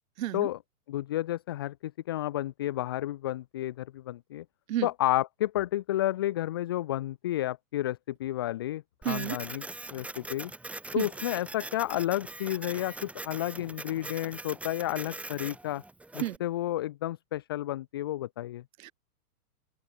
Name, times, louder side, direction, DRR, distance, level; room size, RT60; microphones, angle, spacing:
voice 1, 0.9-4.4 4.8-10.5 10.9-15.8 16.1-18.6, left 14 dB, 15° left, 0.5 m, -31 dB
Printer, 9.0-16.4, right 2 dB, 5° right, 2.5 m, -42 dB
voice 2, 9.0-9.4 11.0-11.1 16.2-16.4 18.8-18.9, right 13 dB, 60° right, 0.7 m, -31 dB
open air
hypercardioid pair, 160°, 47 cm